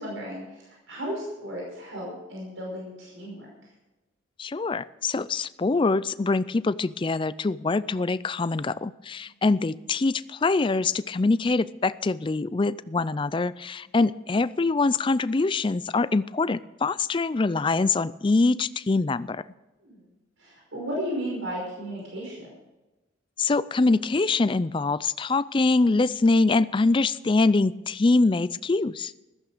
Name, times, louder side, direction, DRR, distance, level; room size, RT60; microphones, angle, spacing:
voice 1, 0.0-3.5 19.8-20.0 20.4-22.5, equal, 90° right, -3 dB, 5.5 m, -34 dB
voice 2, 4.4-19.4 23.4-29.1, left 3 dB, 25° left, 16 dB, 0.4 m, -24 dB
15.0 x 13.5 x 5.0 m, 1.0 s
head